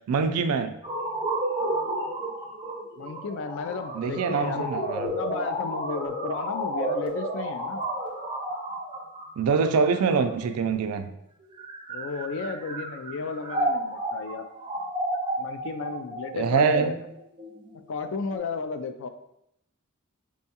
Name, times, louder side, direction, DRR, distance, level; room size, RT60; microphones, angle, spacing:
voice 1, 0.1-0.7 3.9-5.1 9.4-11.1 16.3-17.0, right 5 dB, 85° right, 9 dB, 0.3 m, -24 dB
sound 1, 0.8-10.7 11.4-18.4, right 2 dB, 25° right, 0.4 m, -33 dB
voice 2, 3.0-4.7 5.2-7.8 11.9-14.4 15.4-16.9 17.9-19.1, left 5 dB, 60° left, 8 dB, 0.3 m, -34 dB
Motor vehicle (road) / Siren, 3.1-9.0, left 1 dB, 25° left, 0.8 m, -33 dB
5.1 x 2.3 x 2.8 m, 0.79 s
head